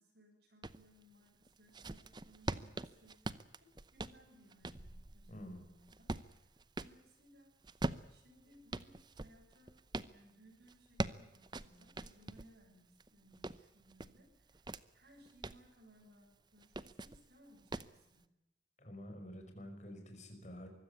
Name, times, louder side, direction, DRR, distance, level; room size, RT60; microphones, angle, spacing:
voice 1, 0.0-6.5 6.8-7.5 8.1-9.8 10.1-14.7 14.9-18.3, right 1 dB, 60° right, 1 dB, 7.3 m, -64 dB
sound 1, 0.6-0.8 1.4-7.0 7.6-10.1 10.7-12.5 13.0-14.8 15.2-15.7 16.6-17.2 17.7-18.0, right 2 dB, 25° right, 0.7 m, -43 dB
voice 2, 5.3-5.6 18.8-20.7, equal, 40° left, 4 dB, 5.6 m, -49 dB
24.5 x 15.5 x 9.8 m, 0.91 s
head